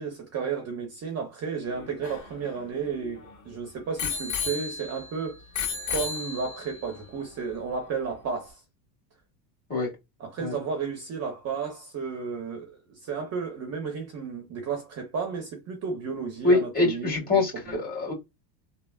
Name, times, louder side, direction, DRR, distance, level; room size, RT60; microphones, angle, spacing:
voice 1, 0.0-5.4 5.9-8.6 10.2-17.8, right 5 dB, 30° right, 0.8 m, -33 dB
Bicycle bell, 1.7-3.3 4.0-5.1 5.5-6.8 7.5-7.6, left 5 dB, 35° left, 1.7 m, -33 dB
voice 2, 16.4-18.1, left 3 dB, 20° left, 1.8 m, -24 dB
3.3 x 2.1 x 2.3 m
supercardioid pair, 130°, 49 cm